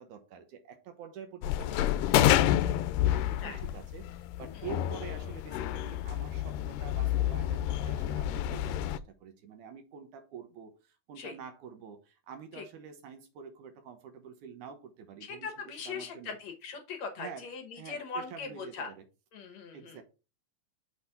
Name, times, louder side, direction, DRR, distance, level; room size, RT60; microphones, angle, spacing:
voice 1, 0.0-2.8 3.1-16.4 17.2-17.5 17.7-19.0 19.7-20.0, right 7 dB, 70° right, 6 dB, 2.3 m, -47 dB
sound 1, 1.4-9.0, left 12 dB, 80° left, 2.0 m, -29 dB
voice 2, 15.2-18.9 19.3-20.0, left 5 dB, 65° left, 6 dB, 2.0 m, -40 dB
6.3 x 4.0 x 5.6 m, 0.31 s
omnidirectional pair, 3.9 m